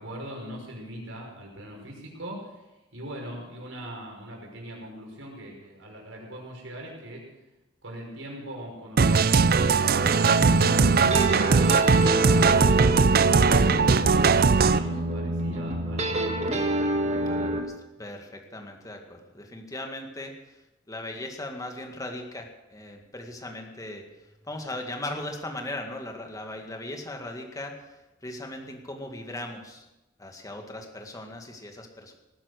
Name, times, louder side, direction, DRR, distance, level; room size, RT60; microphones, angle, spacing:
voice 1, 0.0-2.4 2.9-7.2 7.8-11.5 11.8-16.6, right 1 dB, 90° right, -1 dB, 5.5 m, -40 dB
sound 1, 9.0-14.8, right 5 dB, 50° right, 0.5 m, -20 dB
sound 2, 10.0-17.6, right 1 dB, 35° right, 1.5 m, -28 dB
voice 2, 17.2-17.7 18.0-20.3 20.9-24.1 24.4-27.9 28.2-29.8 30.2-32.1, left 1 dB, 20° left, 3 dB, 2.0 m, -38 dB
18.5 x 10.0 x 6.5 m, 1.0 s
head